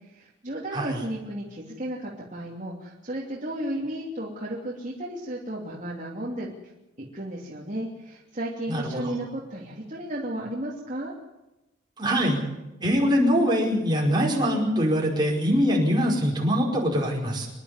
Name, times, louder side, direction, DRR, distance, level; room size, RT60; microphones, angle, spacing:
voice 1, 0.1-6.5 7.0-11.2, right 1 dB, 40° right, -4 dB, 3.0 m, -34 dB
voice 2, 8.7-9.1 12.0-12.4 12.8-17.5, equal, 25° right, -1 dB, 5.2 m, -23 dB
26.0 x 10.5 x 9.8 m, 0.97 s
head